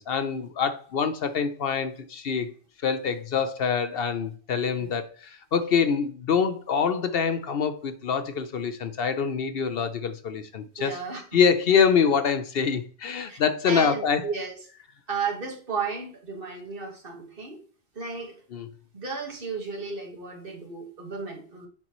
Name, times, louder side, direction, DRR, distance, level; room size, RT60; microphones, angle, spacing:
voice 1, 0.0-2.5 2.8-11.0 11.3-14.3 18.5-18.7, left 6 dB, 65° left, 0.8 m, -25 dB
voice 2, 10.8-11.4 13.3-13.4 13.7-14.5 15.1-17.6 18.0-18.3 18.9-21.7, right 4 dB, 55° right, 1.7 m, -33 dB
10.5 x 3.9 x 3.0 m
omnidirectional pair, 1.1 m